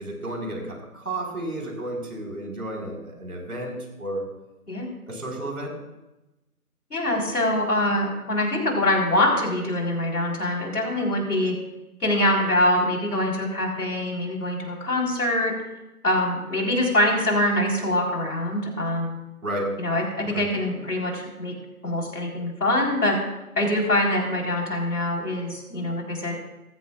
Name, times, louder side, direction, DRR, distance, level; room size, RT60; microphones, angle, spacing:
voice 1, 0.0-4.2 5.1-5.7 19.4-19.7 20.2-20.5, right 1 dB, 70° right, -1 dB, 4.9 m, -32 dB
voice 2, 6.9-11.6 12.0-15.5 16.0-19.1 19.8-21.5 21.8-23.2 23.6-26.4, left 1 dB, 75° left, 0 dB, 4.4 m, -24 dB
17.0 x 15.0 x 2.5 m, 0.97 s
figure-of-eight pair, 170°, 46 cm